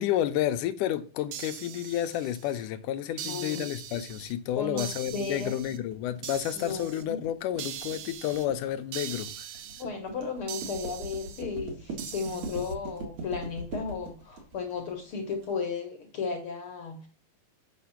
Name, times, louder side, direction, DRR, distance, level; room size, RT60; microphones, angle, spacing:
voice 1, 0.0-9.5, left 11 dB, 75° left, 2.1 m, -30 dB
sound 1, 1.3-2.7 3.2-4.3 4.8-5.8 6.2-7.0 7.6-8.5 8.9-9.8 10.5-11.4 12.0-12.7, right 10 dB, 75° right, 2.3 m, -41 dB
voice 2, 3.2-3.7 4.5-5.5 6.5-7.2 9.7-17.1, left 5 dB, 55° left, 1.6 m, -35 dB
sound 2, 3.9-15.5, right 2 dB, 55° right, 3.1 m, -41 dB
8.5 x 6.0 x 5.7 m
omnidirectional pair, 4.0 m